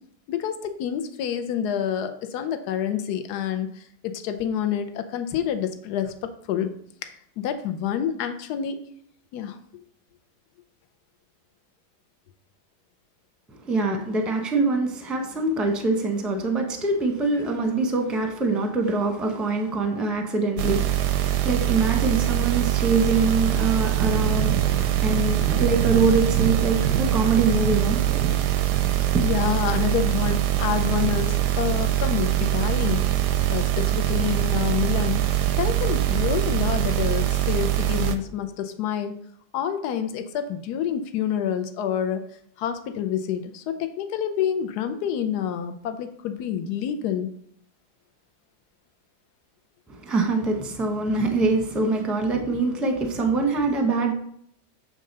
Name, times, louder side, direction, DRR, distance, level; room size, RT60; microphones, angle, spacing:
voice 1, 0.3-6.7 7.0-7.1 7.4-8.8 9.3-9.6 29.2-33.0 33.5-35.3 35.6-39.2 39.5-42.3 42.6-47.3, left 9 dB, 80° left, 8 dB, 1.2 m, -28 dB
voice 2, 13.6-28.0 29.1-29.2 49.9-54.1, right 3 dB, ahead, 3 dB, 0.6 m, -24 dB
sound 1, 20.6-38.1, right 13 dB, 85° right, 1.2 m, -23 dB
sound 2, 23.6-37.1, right 8 dB, 70° right, 0.8 m, -32 dB
7.7 x 3.7 x 5.3 m, 0.68 s
omnidirectional pair, 1.7 m